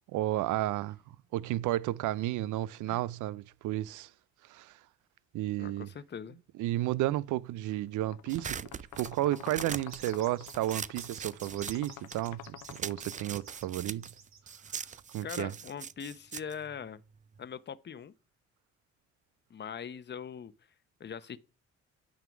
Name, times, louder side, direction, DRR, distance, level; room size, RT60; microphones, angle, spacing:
voice 1, 0.1-1.0 1.3-4.1 4.5-4.7 5.3-5.9 6.6-8.6 9.0-14.1 15.1-15.5, right 15 dB, 80° right, 0.5 m, -32 dB
voice 2, 5.6-6.4 15.2-17.0 17.4-18.1 19.5-20.5 21.0-21.4, left 7 dB, 35° left, 0.8 m, -41 dB
sound 1, 7.9-13.7, left 15 dB, 70° left, 0.5 m, -49 dB
sound 2, 8.3-12.3 12.6-17.4, right 7 dB, 25° right, 0.4 m, -42 dB
sound 3, 9.7-15.7, right 6 dB, 65° right, 2.4 m, -53 dB
9.2 x 3.8 x 6.0 m
cardioid pair, 90°, 30 cm